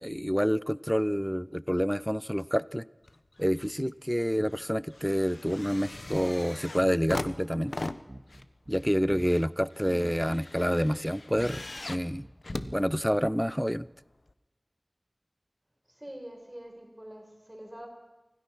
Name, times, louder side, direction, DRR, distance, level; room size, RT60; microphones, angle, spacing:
voice 1, 0.0-2.8 3.4-7.9 8.7-12.3 12.7-13.9, equal, ahead, 18 dB, 0.6 m, -28 dB
sound 1, 3.0-3.8 4.1-13.5 14.3-14.4, left 2 dB, 75° left, 0.9 m, -41 dB
sound 2, 8.1-9.5 9.8-11.0 11.4-11.8 12.1-13.0 13.2-13.3, right 1 dB, 50° right, 2.0 m, -45 dB
voice 2, 15.9-17.9, right 1 dB, 25° right, 3 dB, 5.1 m, -45 dB
25.5 x 16.5 x 6.1 m, 1.1 s
wide cardioid pair, 45°, 0 cm